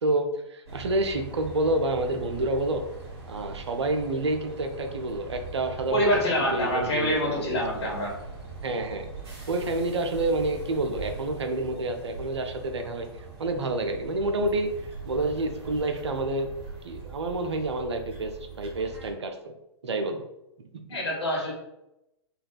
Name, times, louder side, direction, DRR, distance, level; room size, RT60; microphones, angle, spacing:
voice 1, 0.0-2.8 3.3-7.9 8.6-9.1 9.5-13.1 13.4-14.7 15.1-16.5 16.8-19.5 19.8-20.2, right 2 dB, 75° right, 6 dB, 0.4 m, -28 dB
sound 1, 0.7-19.1, right 4 dB, 60° right, 1.3 m, -41 dB
voice 2, 5.9-8.1 20.9-21.5, equal, 70° left, -2 dB, 1.1 m, -26 dB
3.2 x 2.3 x 2.2 m, 0.87 s
figure-of-eight pair, 105°, 15 cm